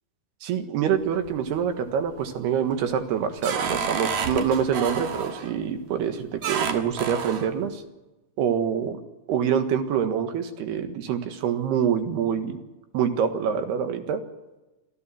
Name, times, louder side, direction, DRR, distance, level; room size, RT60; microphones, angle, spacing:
voice 1, 0.4-7.8 8.4-9.0 9.3-12.6 12.9-14.2, right 8 dB, 80° right, 7 dB, 3.6 m, -25 dB
sound 1, 1.0-1.6 2.1-2.5 2.9-5.5 6.4-7.5, right 6 dB, 60° right, 2.6 m, -30 dB
26.0 x 14.5 x 7.5 m, 1.1 s
omnidirectional pair, 4.7 m